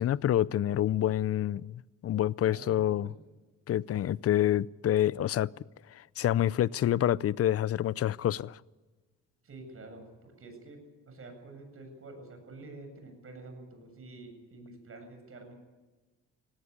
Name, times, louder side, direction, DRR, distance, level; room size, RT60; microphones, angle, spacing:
voice 1, 0.0-3.1 3.7-5.5 5.9-8.6, left 12 dB, 50° left, 0.6 m, -27 dB
voice 2, 2.5-3.1 9.4-10.8 11.0-15.5, right 2 dB, 45° right, 7.6 m, -48 dB
18.0 x 17.0 x 9.7 m
cardioid pair, 90°, 30 cm